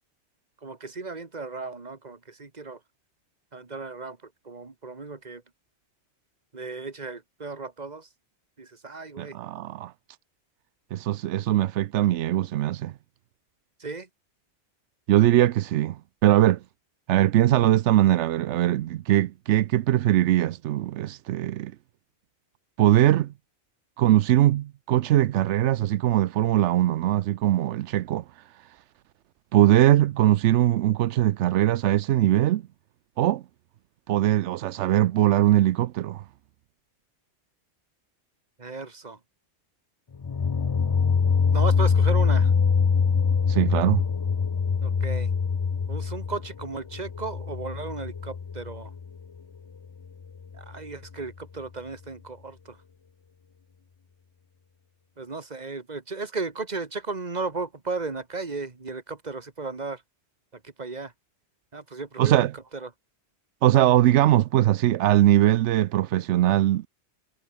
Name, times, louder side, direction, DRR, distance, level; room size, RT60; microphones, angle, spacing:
voice 1, 0.6-2.8 3.5-5.4 6.5-8.1 8.6-9.4 13.8-14.1 38.6-39.2 41.5-42.5 44.8-45.3 45.9-48.9 50.5-52.8 55.2-60.0 60.5-61.1 61.7-62.9, right 3 dB, 40° right, 1.9 m, -35 dB
voice 2, 9.2-9.9 10.9-12.9 15.1-16.6 17.1-21.7 22.8-23.3 24.0-28.2 29.5-32.6 33.2-33.4 34.1-36.2 43.5-44.0 62.2-62.5 63.6-66.9, right 13 dB, 90° right, 0.9 m, -21 dB
sound 1, 40.1-49.1, left 6 dB, 40° left, 0.4 m, -24 dB
omnidirectional pair, 1.1 m